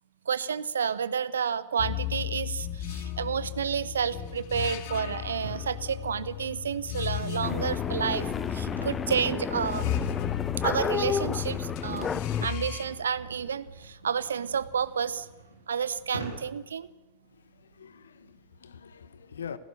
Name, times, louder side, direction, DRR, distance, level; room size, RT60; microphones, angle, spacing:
voice 1, 0.3-8.2 8.5-9.9 10.6-15.3 15.7-16.9, right 7 dB, 70° right, 0.9 m, -30 dB
sound 1, 1.8-12.8, left 12 dB, 50° left, 2.5 m, -35 dB
sound 2, 5.3-5.7 6.4-16.7, right 2 dB, 85° right, 4.4 m, -45 dB
sound 3, 7.4-12.5, left 7 dB, 20° left, 0.6 m, -32 dB
voice 2, 17.2-19.6, left 7 dB, 70° left, 1.3 m, -44 dB
28.0 x 16.5 x 6.8 m
figure-of-eight pair, 90°, 0 cm